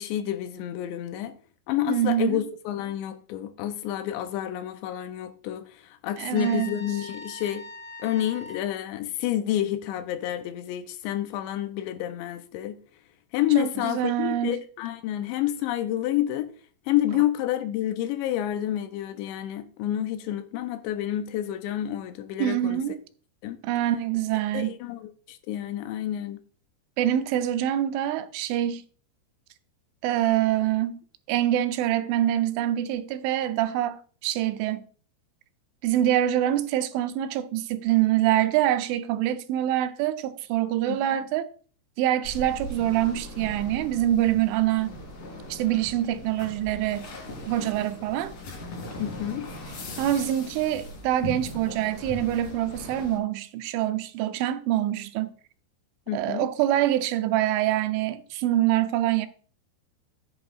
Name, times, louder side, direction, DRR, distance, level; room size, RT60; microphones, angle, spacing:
voice 1, 0.0-1.3 1.7-7.7 8.0-12.8 13.3-16.5 16.9-22.8 23.4-23.6 24.5-26.4 40.9-41.0 49.0-49.5 56.1-56.5, left 12 dB, 80° left, 2.9 m, -29 dB
voice 2, 1.9-2.4 6.2-6.7 13.6-14.6 22.4-23.0 23.6-24.7 27.0-28.8 30.0-31.0 31.3-34.9 35.8-41.5 42.0-45.0 45.5-47.1 47.5-48.3 50.0-55.3 56.1-59.3, right 12 dB, 90° right, 3.2 m, -25 dB
Trumpet, 6.3-8.7, left 2 dB, 35° left, 3.1 m, -42 dB
sound 1, 42.2-53.2, left 1 dB, 50° left, 3.8 m, -39 dB
14.0 x 8.2 x 2.4 m
omnidirectional pair, 5.3 m